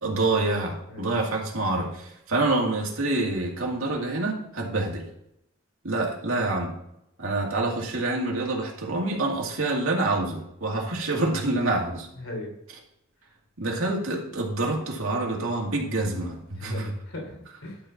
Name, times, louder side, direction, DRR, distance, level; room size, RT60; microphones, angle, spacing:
voice 1, 0.0-5.0 5.8-6.7 7.2-12.1 13.6-16.9, right 2 dB, 75° right, -1 dB, 2.2 m, -27 dB
voice 2, 12.2-12.5 16.6-17.8, left 1 dB, 70° left, 0 dB, 3.3 m, -38 dB
12.0 x 4.4 x 5.7 m, 0.78 s
head